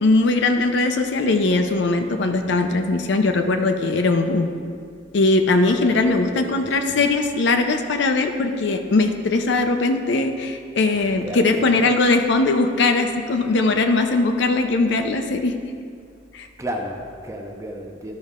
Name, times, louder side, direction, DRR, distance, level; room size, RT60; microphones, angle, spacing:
voice 1, 0.0-4.5 5.1-15.5 16.3-16.5, left 3 dB, 60° left, 6 dB, 0.5 m, -20 dB
voice 2, 5.7-7.0 10.9-11.9 16.6-18.2, equal, 15° right, 1 dB, 0.7 m, -33 dB
12.5 x 5.4 x 3.6 m, 2.2 s
head